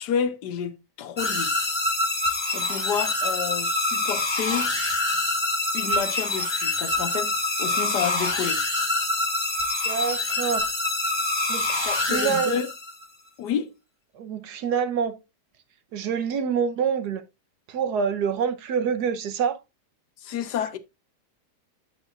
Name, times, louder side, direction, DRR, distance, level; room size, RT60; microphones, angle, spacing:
voice 1, 0.0-1.7 2.5-4.7 5.7-8.6 11.8-12.7 13.4-13.7 20.2-20.8, left 8 dB, 75° left, 1.4 m, -30 dB
sound 1, 1.2-13.0, left 2 dB, 15° left, 1.2 m, -26 dB
voice 2, 9.8-10.6 11.5-12.6 14.1-15.1 15.9-17.2 17.7-19.6, right 7 dB, 70° right, 1.4 m, -26 dB
9.1 x 7.5 x 2.4 m
omnidirectional pair, 1.8 m